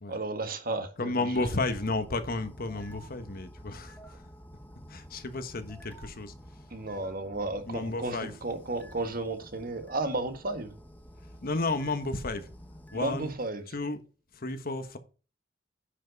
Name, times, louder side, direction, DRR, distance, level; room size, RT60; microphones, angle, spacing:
voice 1, 0.1-1.5 6.7-10.7 12.9-13.7, right 2 dB, 50° right, 1.7 m, -33 dB
voice 2, 1.0-4.2 4.9-6.3 7.7-8.3 11.4-12.5 12.9-13.3 13.7-14.0 14.3-15.0, left 2 dB, 50° left, 1.2 m, -32 dB
sound 1, 1.3-13.4, equal, 10° left, 1.1 m, -50 dB
10.0 x 5.7 x 5.2 m
head